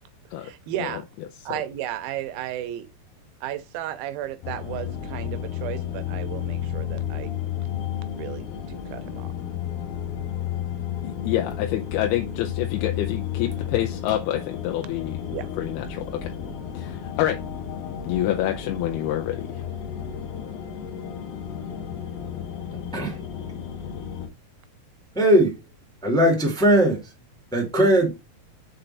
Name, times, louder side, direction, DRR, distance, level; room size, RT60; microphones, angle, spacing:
voice 1, 0.4-1.0 1.5-2.9 3.4-7.3 8.1-9.3 15.3-15.5, right 12 dB, 80° right, 2.5 m, -34 dB
sound 1, 4.4-24.3, left 9 dB, 75° left, 2.8 m, -32 dB
voice 2, 11.0-16.3 16.7-17.4 18.1-19.6, left 12 dB, 90° left, 2.7 m, -27 dB
voice 3, 25.1-25.6 26.0-27.1 27.5-28.1, right 1 dB, 5° left, 0.7 m, -19 dB
6.5 x 4.3 x 4.1 m
omnidirectional pair, 4.5 m